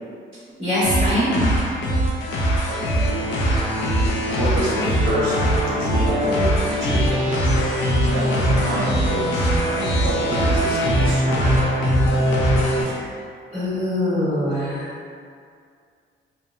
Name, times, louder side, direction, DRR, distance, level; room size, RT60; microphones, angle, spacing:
voice 1, 0.6-1.5 12.8-13.1 13.5-14.9, left 1 dB, 25° right, -13 dB, 1.2 m, -23 dB
sound 1, 0.8-12.8, equal, 75° left, 0.5 m, -21 dB
voice 2, 2.7-3.0 4.3-5.3 5.7-7.4 8.1-11.6, right 1 dB, 85° right, -5 dB, 0.7 m, -28 dB
2.8 x 2.0 x 2.4 m, 2.2 s
cardioid pair, 90°, 20 cm